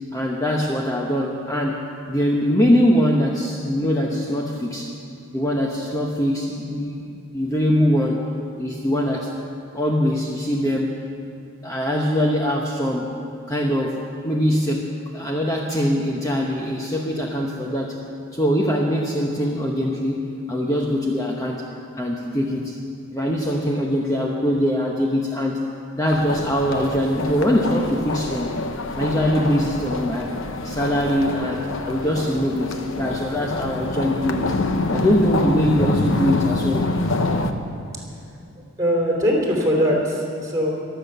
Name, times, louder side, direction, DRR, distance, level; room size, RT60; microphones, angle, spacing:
voice 1, 0.1-4.9 5.3-8.3 8.6-9.3 9.7-10.9 11.6-14.9 15.1-18.0 18.3-21.6 22.0-22.8 23.1-25.6 26.0-28.6 28.9-30.4 30.6-34.5 34.9-36.9, equal, 15° left, -1 dB, 1.0 m, -22 dB
sound 1, 26.1-37.5, left 2 dB, 65° left, 0.9 m, -26 dB
voice 2, 38.8-40.7, equal, 15° right, -1 dB, 3.2 m, -21 dB
23.0 x 8.1 x 6.8 m, 2.6 s
head